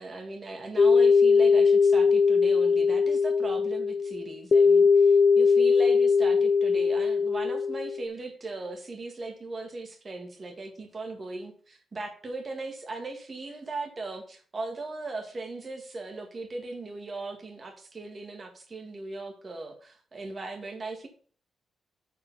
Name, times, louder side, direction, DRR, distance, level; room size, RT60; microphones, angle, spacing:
voice 1, 0.0-4.9 5.4-21.1, right 2 dB, 35° right, 1.9 m, -38 dB
sound 1, 0.8-8.0, left 5 dB, 50° left, 0.5 m, -21 dB
6.7 x 5.0 x 5.5 m
cardioid pair, 100°, 0 cm